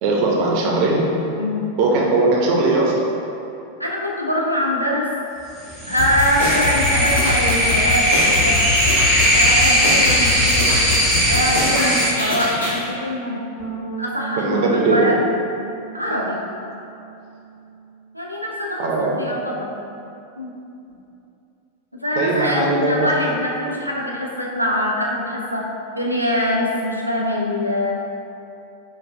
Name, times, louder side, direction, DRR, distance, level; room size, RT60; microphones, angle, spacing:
voice 1, 0.0-1.0 1.8-3.1 14.4-15.1 18.8-19.1 22.2-23.1, right 3 dB, 45° right, -2 dB, 0.6 m, -19 dB
voice 2, 3.8-5.1 5.9-8.6 9.3-10.7 11.3-13.4 14.0-15.2 15.9-16.4 18.1-19.7 20.4-20.5 21.9-25.6 25.9-27.9, left 1 dB, 90° left, -3 dB, 0.4 m, -23 dB
sound 1, 5.7-12.1, equal, 5° right, 0.9 m, -18 dB
sound 2, 6.0-12.8, left 3 dB, 65° left, 0.9 m, -24 dB
sound 3, 13.6-18.2 18.4-19.8, right 6 dB, 25° left, 0.9 m, -38 dB
4.6 x 2.3 x 2.6 m, 2.7 s
figure-of-eight pair, 90°, 0 cm